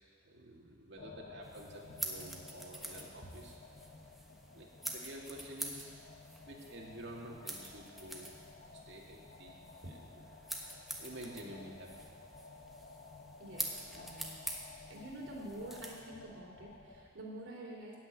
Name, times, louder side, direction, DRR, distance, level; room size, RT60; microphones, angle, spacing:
voice 1, 0.2-3.5 4.5-5.9 6.5-8.3 8.8-10.2 11.0-12.1, right 1 dB, 65° right, -2 dB, 2.4 m, -50 dB
sound 1, 1.0-17.0, left 3 dB, 50° left, 1.0 m, -54 dB
sound 2, 1.4-16.0, right 1 dB, ahead, 1.2 m, -46 dB
voice 2, 13.4-14.3 14.7-18.0, right 1 dB, 80° right, -1 dB, 3.0 m, -47 dB
14.5 x 6.5 x 9.2 m, 2.1 s
head